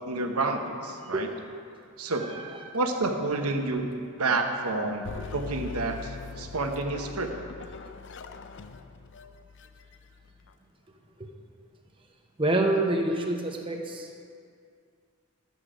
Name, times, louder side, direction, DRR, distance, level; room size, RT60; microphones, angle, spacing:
voice 1, 0.0-1.3 2.0-2.3 2.7-3.9 4.2-5.0 5.3-7.3, right 3 dB, 85° right, 4 dB, 1.1 m, -29 dB
voice 2, 2.1-2.8 12.4-14.2, right 2 dB, 25° right, 2 dB, 1.0 m, -28 dB
sound 1, 5.0-10.5, left 4 dB, 55° left, 0.5 m, -42 dB
12.5 x 8.4 x 5.0 m, 2.3 s
head